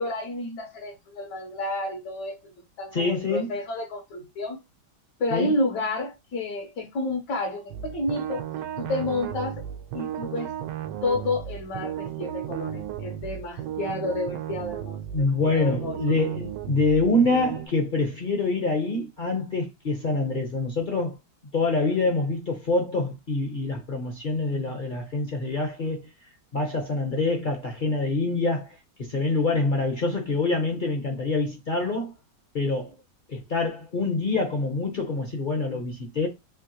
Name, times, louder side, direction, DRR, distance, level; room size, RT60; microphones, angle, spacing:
voice 1, 0.0-2.5 2.8-4.6 5.2-8.4 8.8-9.6 9.9-10.5 11.0-16.2, left 2 dB, 70° left, 1.4 m, -30 dB
voice 2, 2.9-3.5 5.3-5.5 15.1-21.2 21.5-26.1 26.5-32.1 32.5-32.9 33.3-36.3, left 2 dB, 50° left, 0.6 m, -26 dB
sound 1, 7.7-17.7, right 11 dB, 80° right, 1.2 m, -34 dB
3.6 x 2.8 x 2.8 m
omnidirectional pair, 1.9 m